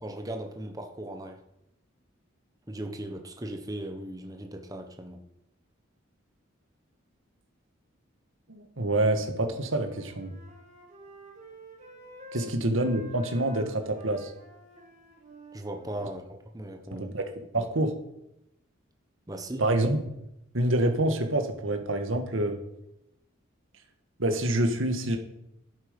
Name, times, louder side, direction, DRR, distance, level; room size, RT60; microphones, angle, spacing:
voice 1, 0.0-1.4 2.7-5.2 12.3-12.5 15.5-17.1 19.3-19.6, right 1 dB, 15° right, 4 dB, 1.2 m, -38 dB
voice 2, 8.5-10.3 12.3-14.3 16.9-17.9 19.6-20.0 20.5-22.6 24.2-25.2, right 1 dB, 80° right, 5 dB, 1.8 m, -27 dB
Wind instrument woodwind instrument, 9.3-16.2, equal, 35° right, 4.4 m, -49 dB
11.5 x 8.7 x 5.3 m, 0.83 s
head